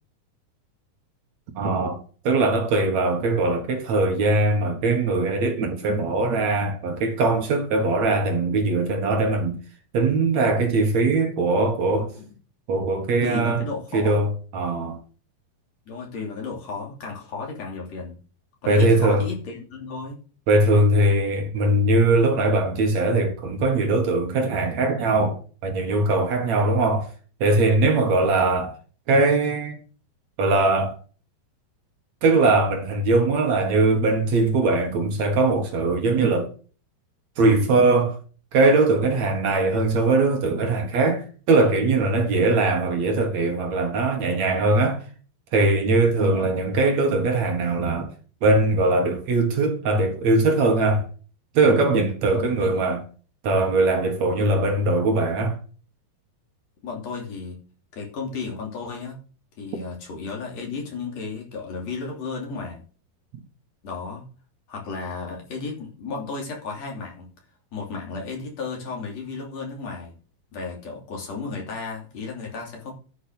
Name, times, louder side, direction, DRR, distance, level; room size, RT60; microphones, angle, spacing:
voice 1, 1.6-9.6 9.9-12.1 12.7-13.6 13.9-15.0 18.7-19.2 20.5-27.1 27.4-28.8 29.1-29.8 30.4-31.0 32.2-36.5 37.4-38.2 38.5-45.0 45.5-48.1 48.4-51.1 51.5-53.0 53.4-55.6, right 2 dB, 55° right, 2.5 m, -21 dB
voice 2, 11.8-12.3 13.2-14.2 15.9-18.2 18.6-20.2 26.5-26.8 27.9-28.2 46.1-46.6 52.3-52.9 56.8-57.6 57.9-59.2 59.6-62.8 63.8-64.2 64.7-67.3 67.7-70.1 70.5-72.9, left 4 dB, 45° left, 4.0 m, -34 dB
12.0 x 6.5 x 6.5 m
omnidirectional pair, 4.4 m